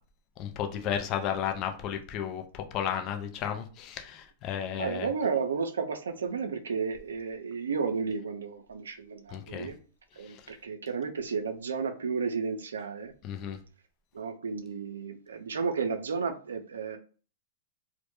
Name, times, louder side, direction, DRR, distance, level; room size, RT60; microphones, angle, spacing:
voice 1, 0.4-2.4 2.7-5.1 9.3-9.7 13.2-13.6, left 9 dB, 40° left, 0.4 m, -33 dB
voice 2, 4.8-9.8 10.2-13.1 14.1-17.0, right 5 dB, 85° right, 0.4 m, -32 dB
2.1 x 2.1 x 2.9 m
hypercardioid pair, 120°, 0 cm